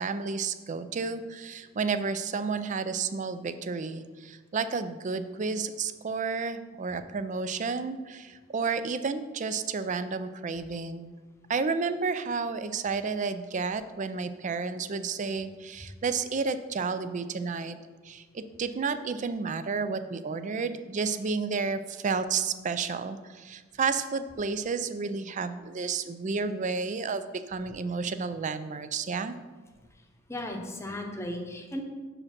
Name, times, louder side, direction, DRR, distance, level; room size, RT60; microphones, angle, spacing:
voice 1, 0.0-11.1 11.5-17.8 18.0-29.4, right 4 dB, 40° right, 11 dB, 0.4 m, -31 dB
voice 2, 30.3-31.8, left 1 dB, 15° left, 3 dB, 0.9 m, -35 dB
6.4 x 4.9 x 5.9 m, 1.3 s
head